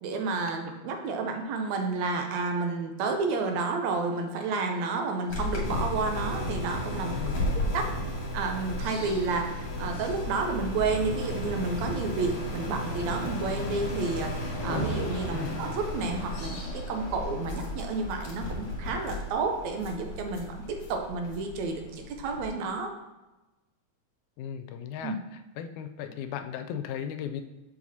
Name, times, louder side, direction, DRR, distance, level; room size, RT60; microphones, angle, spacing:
voice 1, 0.0-7.4 7.7-7.9 8.3-9.5 9.8-20.5 20.9-22.9 25.0-25.2, right 4 dB, 75° right, 4 dB, 1.9 m, -30 dB
sound 1, 5.3-22.5, left 1 dB, 50° left, 2.4 m, -34 dB
voice 2, 7.1-7.7 15.3-15.6 24.4-25.2 25.6-27.4, left 9 dB, 85° left, 8 dB, 2.0 m, -36 dB
7.2 x 6.3 x 2.8 m, 1.1 s
omnidirectional pair, 3.4 m